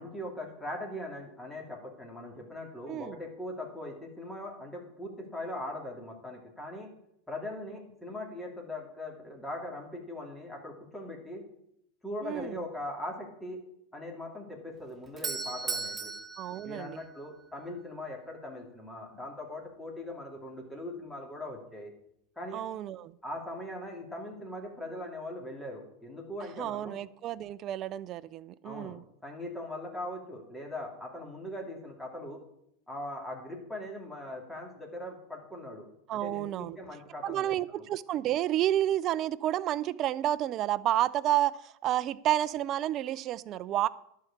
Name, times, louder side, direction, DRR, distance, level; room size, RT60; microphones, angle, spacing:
voice 1, 0.0-6.9 7.3-11.4 12.0-13.6 13.9-16.1 16.6-21.9 22.4-22.6 23.2-27.0 28.6-29.0 29.2-32.4 32.9-35.9 36.1-37.9, left 1 dB, 10° left, 2.7 m, -40 dB
voice 2, 12.2-12.6 16.4-17.0 22.5-23.1 26.6-29.0 36.1-36.8 37.2-43.9, right 12 dB, 45° right, 0.4 m, -30 dB
Doorbell, 14.8-17.6, right 4 dB, 15° right, 0.9 m, -37 dB
11.0 x 4.7 x 7.1 m
hypercardioid pair, 105°, 0 cm